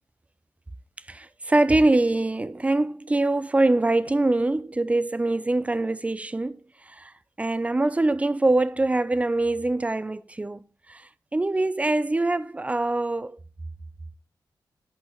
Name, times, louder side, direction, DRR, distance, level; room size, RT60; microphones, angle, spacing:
voice 1, 1.1-7.1 7.4-10.6 10.9-13.4, right 2 dB, 20° right, 0.5 m, -24 dB
13.5 x 5.3 x 3.4 m
cardioid pair, 60°, 7 cm